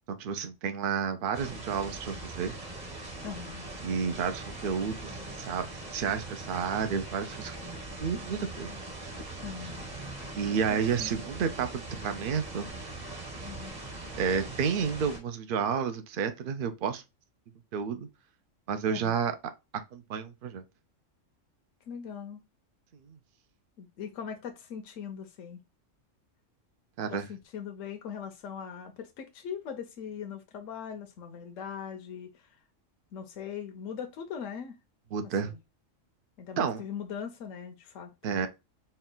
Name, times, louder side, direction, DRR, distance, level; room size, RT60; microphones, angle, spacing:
voice 1, 0.1-2.6 3.8-7.6 8.0-8.7 10.3-12.7 14.2-17.0 17.7-18.1 18.7-19.3 19.9-20.6 23.1-23.2 27.0-27.3 35.1-35.5 36.6-36.8 38.2-38.5, right 6 dB, 55° right, 0.6 m, -31 dB
sound 1, 1.3-15.2, right 2 dB, 35° right, 1.2 m, -41 dB
voice 2, 3.2-3.7 9.4-9.9 10.5-11.1 13.4-13.8 18.9-19.2 21.9-22.4 23.8-25.6 27.1-32.6 33.1-34.8 35.4-35.6 36.4-38.5, left 7 dB, 75° left, 1.0 m, -40 dB
4.4 x 2.3 x 3.7 m
omnidirectional pair, 1.3 m